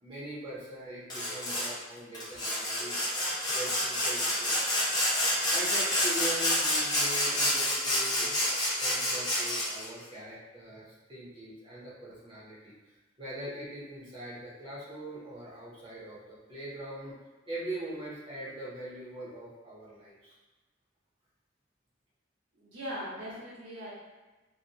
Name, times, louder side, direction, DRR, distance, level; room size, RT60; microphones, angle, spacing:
voice 1, 0.0-3.1 3.5-4.5 5.5-8.3 8.8-12.7 13.2-17.1 17.5-20.3, right 1 dB, 25° right, -8 dB, 0.6 m, -41 dB
Sawing, 1.1-1.7 2.1-9.9, left 1 dB, 20° left, 0.6 m, -28 dB
voice 2, 22.5-23.9, equal, 85° right, -8 dB, 1.1 m, -40 dB
2.6 x 2.1 x 2.7 m, 1.2 s
head